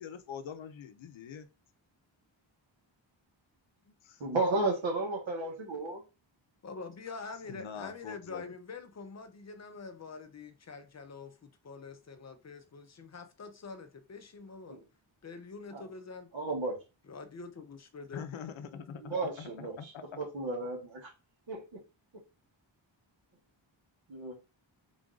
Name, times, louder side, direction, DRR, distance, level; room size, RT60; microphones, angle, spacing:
voice 1, 0.0-1.5 4.0-4.2 7.5-8.5 18.1-20.2, left 7 dB, 75° left, 0.6 m, -44 dB
voice 2, 4.2-6.0 14.7-14.8 15.7-15.8 16.3-16.8 19.0-21.1 21.5-21.8 24.1-24.4, right 2 dB, 70° right, 1.3 m, -33 dB
voice 3, 6.6-14.8 15.2-16.3 17.1-18.2 18.7-19.0, left 4 dB, 35° left, 0.5 m, -45 dB
3.9 x 2.5 x 3.7 m
wide cardioid pair, 160°, 47 cm